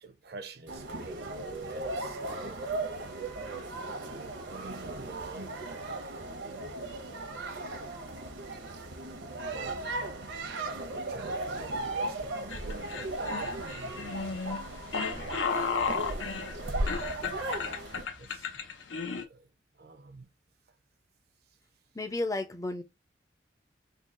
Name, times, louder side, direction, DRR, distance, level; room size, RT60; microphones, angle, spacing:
voice 1, 0.0-3.1 4.0-6.3 9.5-9.7 10.3-10.5 11.1-14.0 18.2-18.6 19.1-19.5 19.7-20.3, right 4 dB, 55° right, 0.6 m, -49 dB
sound 1, 0.7-18.0, right 2 dB, 75° right, 0.9 m, -36 dB
sound 2, 11.1-18.4, left 1 dB, 55° left, 1.5 m, -55 dB
sound 3, 12.5-19.2, left 5 dB, 90° left, 0.7 m, -34 dB
voice 2, 21.9-22.8, left 2 dB, 15° left, 0.5 m, -32 dB
3.8 x 2.3 x 3.6 m
head